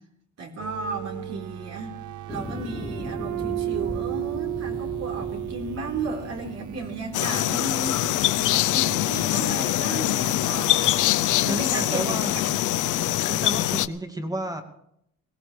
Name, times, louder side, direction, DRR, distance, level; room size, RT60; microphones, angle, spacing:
voice 1, 0.4-1.9 2.3-8.1 8.5-11.2 11.4-12.2, right 3 dB, 60° right, 1 dB, 4.0 m, -34 dB
sound 1, 0.6-13.9, right 14 dB, 75° right, 0.8 m, -36 dB
sound 2, 2.3-7.3, left 3 dB, 15° left, 0.6 m, -38 dB
sound 3, 7.1-13.9, left 15 dB, 80° left, 0.7 m, -23 dB
voice 2, 11.5-12.4 13.3-14.6, right 1 dB, 10° right, 5 dB, 2.2 m, -32 dB
22.0 x 17.5 x 3.4 m, 0.74 s
cardioid pair, 90°, 30 cm